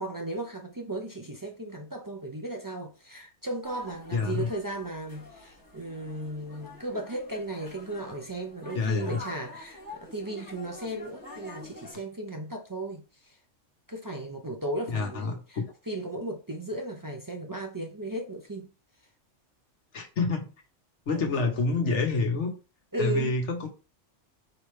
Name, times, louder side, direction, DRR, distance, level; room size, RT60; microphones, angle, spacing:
voice 1, 0.0-13.4 13.9-18.7 21.7-21.8 22.9-23.3, right 1 dB, 30° right, 0.3 m, -36 dB
sound 1, 3.6-11.9, left 2 dB, 15° left, 1.1 m, -47 dB
voice 2, 4.1-4.5 8.7-9.2 14.9-15.6 19.9-20.4 21.1-22.5 23.0-23.7, left 3 dB, 65° left, 1.4 m, -27 dB
5.0 x 3.2 x 3.2 m
omnidirectional pair, 1.3 m